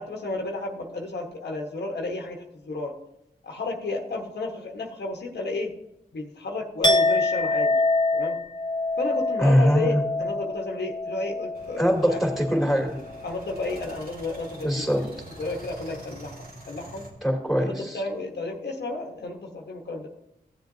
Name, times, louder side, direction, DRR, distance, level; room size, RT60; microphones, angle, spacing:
voice 1, 0.0-2.9 3.4-5.7 6.1-7.8 8.1-8.4 9.0-12.2 13.2-15.1 15.4-17.1 17.6-20.1, left 2 dB, 90° left, 2 dB, 1.2 m, -32 dB
Chink clink, 6.8-12.8 13.1-13.5, left 2 dB, 25° left, 1.2 m, -26 dB
voice 2, 9.4-10.0 11.8-13.0 14.6-15.1 17.2-18.0, equal, ahead, 1 dB, 2.4 m, -22 dB
sound 1, 11.5-17.1, right 1 dB, 65° right, 2.2 m, -45 dB
15.0 x 7.7 x 2.7 m, 0.87 s
cardioid pair, 45°, 17 cm